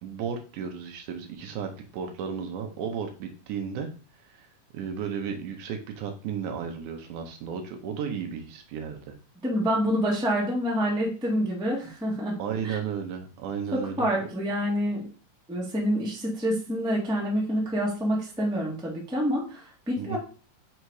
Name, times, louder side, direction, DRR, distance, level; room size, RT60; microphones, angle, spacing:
voice 1, 0.0-3.9 4.3-4.5 4.7-9.1 12.4-14.3 20.0-20.2, right 7 dB, 75° right, 4 dB, 2.2 m, -34 dB
voice 2, 9.4-12.4 12.6-12.8 13.7-15.1 15.5-20.2, equal, 5° right, -3 dB, 0.8 m, -27 dB
5.6 x 3.9 x 4.7 m, 0.37 s
omnidirectional pair, 3.7 m